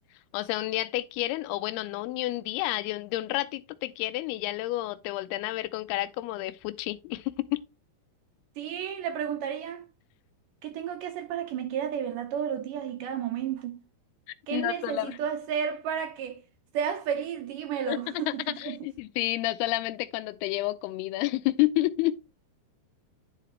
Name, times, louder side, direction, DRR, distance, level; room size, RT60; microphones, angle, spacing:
voice 1, 0.3-7.6 14.5-15.2 17.9-22.2, left 17 dB, 90° left, 2.6 m, -30 dB
voice 2, 8.6-9.9 10.6-13.8 14.5-16.4 16.7-18.8, right 8 dB, 75° right, 2.0 m, -32 dB
9.9 x 4.9 x 3.0 m
omnidirectional pair, 4.5 m